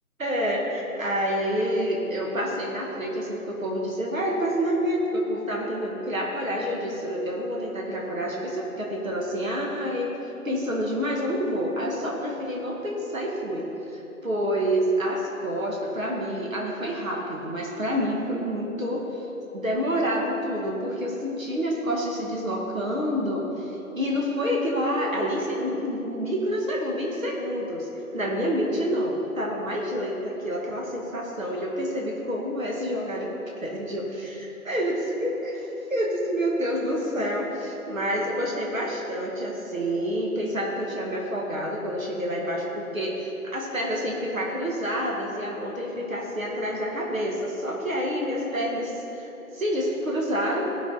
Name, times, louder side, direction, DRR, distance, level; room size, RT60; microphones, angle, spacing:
voice 1, 0.2-10.1 10.4-19.0 19.5-27.9 28.1-33.3 33.6-49.3 49.5-50.7, equal, 65° right, -2 dB, 1.9 m, -28 dB
14.5 x 6.0 x 4.2 m, 3.0 s
figure-of-eight pair, 160°, 43 cm